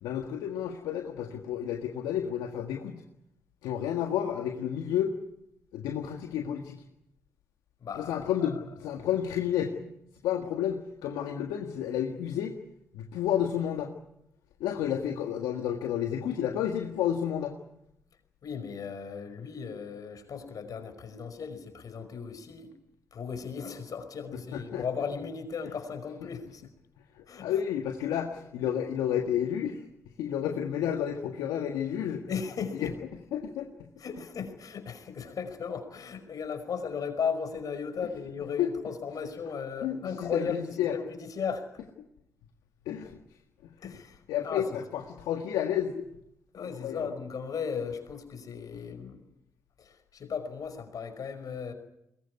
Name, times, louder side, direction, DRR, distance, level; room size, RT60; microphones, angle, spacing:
voice 1, 0.0-3.0 3.6-5.1 5.7-6.8 8.0-9.8 10.2-12.5 12.9-13.9 14.6-17.5 24.5-24.8 27.1-29.8 30.2-32.2 32.8-32.9 33.3-33.6 38.6-38.7 39.8-40.5 40.8-40.9 42.8-43.1 44.3-46.1 46.6-47.1, left 9 dB, 80° left, 4 dB, 1.7 m, -31 dB
voice 2, 7.8-8.5 14.9-15.0 18.4-22.7 23.1-26.6 27.3-27.6 32.3-32.9 33.4-33.5 34.0-41.7 43.8-44.7 46.5-49.3 49.8-51.7, left 6 dB, 60° left, 8 dB, 5.3 m, -36 dB
22.0 x 21.0 x 9.7 m, 0.81 s
hypercardioid pair, 40°, 7 cm